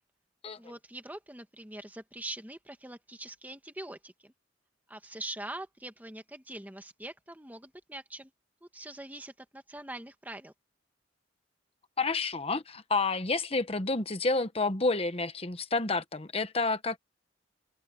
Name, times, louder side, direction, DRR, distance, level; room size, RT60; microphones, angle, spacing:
voice 1, 0.6-4.3 4.9-8.3 8.6-10.5, right 1 dB, 10° right, 1.8 m, -43 dB
voice 2, 12.0-17.0, left 3 dB, 30° left, 1.1 m, -29 dB
head